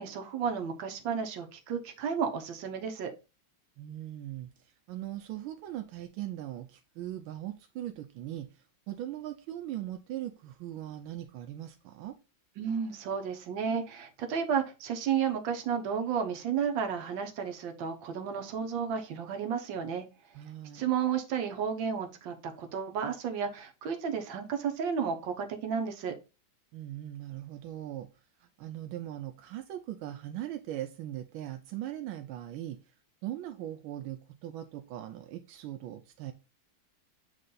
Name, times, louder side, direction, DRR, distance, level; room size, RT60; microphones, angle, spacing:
voice 1, 0.0-3.1 12.6-20.0 20.7-26.1, right 7 dB, 75° right, 5 dB, 1.7 m, -32 dB
voice 2, 3.8-12.2 20.3-20.9 26.7-28.1 28.4-32.8 33.2-36.3, right 13 dB, 90° right, 7 dB, 1.4 m, -40 dB
7.7 x 3.3 x 3.8 m, 0.30 s
omnidirectional pair, 2.2 m